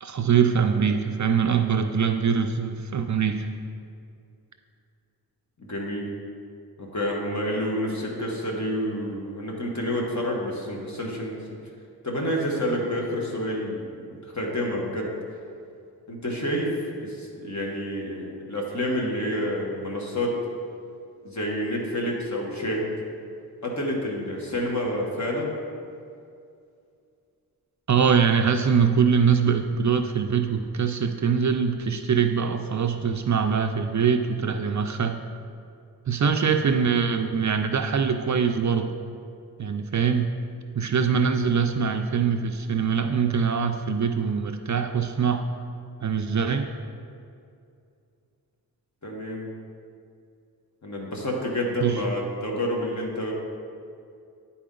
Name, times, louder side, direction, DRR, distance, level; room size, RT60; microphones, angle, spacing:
voice 1, 0.0-3.5 27.9-35.2 36.1-38.9 39.6-40.3 40.8-45.5 46.0-46.7 51.8-52.0, right 6 dB, 50° right, 6 dB, 0.4 m, -23 dB
voice 2, 5.6-6.1 6.8-11.4 12.0-15.1 16.1-16.7 17.0-20.3 21.2-22.9 23.6-25.5 49.0-49.4 50.8-53.3, equal, 45° left, -2 dB, 1.4 m, -29 dB
10.0 x 4.3 x 3.8 m, 2.4 s
wide cardioid pair, 80°, 39 cm